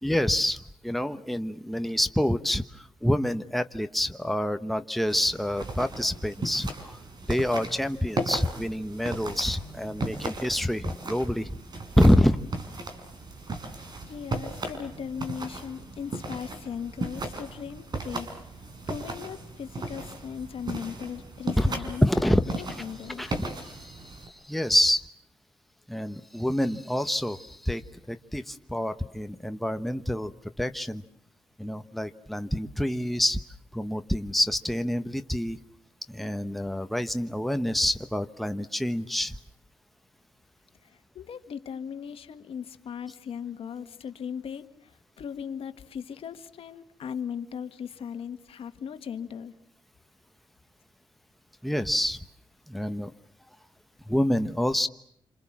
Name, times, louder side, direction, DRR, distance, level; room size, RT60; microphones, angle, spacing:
voice 1, 0.0-7.0 7.3-11.6 12.0-12.4 21.6-21.7 22.0-22.5 23.2-25.0 25.9-27.8 28.1-30.3 30.6-31.0 31.6-33.4 33.7-35.6 36.1-39.3 51.6-52.2 52.7-53.1 54.1-54.9, equal, ahead, 9 dB, 1.1 m, -27 dB
sound 1, 5.1-24.3, right 2 dB, 45° right, 4.9 m, -36 dB
voice 2, 14.1-23.3 40.8-49.5, left 7 dB, 70° left, 9 dB, 1.7 m, -38 dB
27.0 x 27.0 x 7.4 m, 0.70 s
cardioid pair, 85°, 10 cm